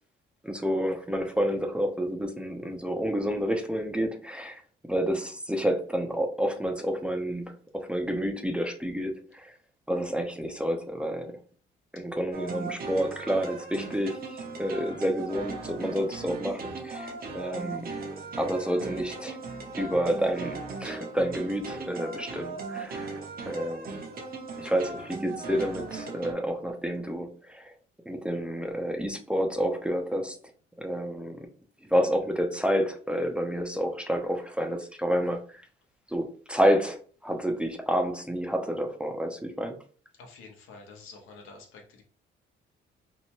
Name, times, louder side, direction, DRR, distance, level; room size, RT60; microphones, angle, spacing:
voice 1, 0.4-4.6 4.9-9.5 9.9-11.4 11.9-17.9 18.4-19.4 19.8-23.1 23.5-24.0 24.6-27.7 28.1-30.4 30.8-31.5 31.9-35.6 36.1-39.7, equal, 5° right, 0.4 m, -29 dB
sound 1, 12.3-26.3, right 3 dB, 50° right, 0.7 m, -38 dB
voice 2, 40.2-42.0, left 3 dB, 85° left, 0.9 m, -48 dB
2.7 x 2.2 x 2.9 m
cardioid pair, 90°, 20 cm